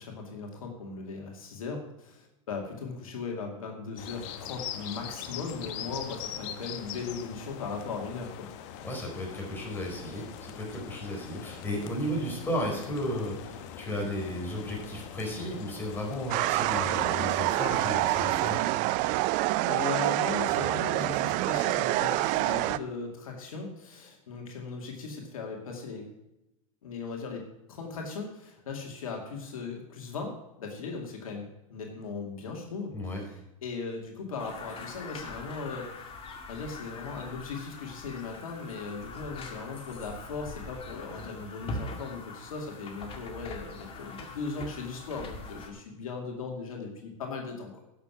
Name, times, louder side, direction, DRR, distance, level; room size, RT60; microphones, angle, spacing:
voice 1, 0.0-8.5 19.7-26.1 26.8-36.1 36.5-47.7, left 4 dB, 85° left, 1 dB, 2.2 m, -38 dB
sound 1, 4.0-18.6, left 9 dB, 55° left, 1.1 m, -42 dB
voice 2, 8.8-18.6 32.9-33.2, equal, 10° left, -2 dB, 4.5 m, -34 dB
sound 2, 16.3-22.8, right 18 dB, 45° right, 0.5 m, -27 dB
sound 3, 34.4-45.7, left 3 dB, 30° left, 2.2 m, -43 dB
11.5 x 6.9 x 5.8 m, 0.91 s
hypercardioid pair, 105°, 18 cm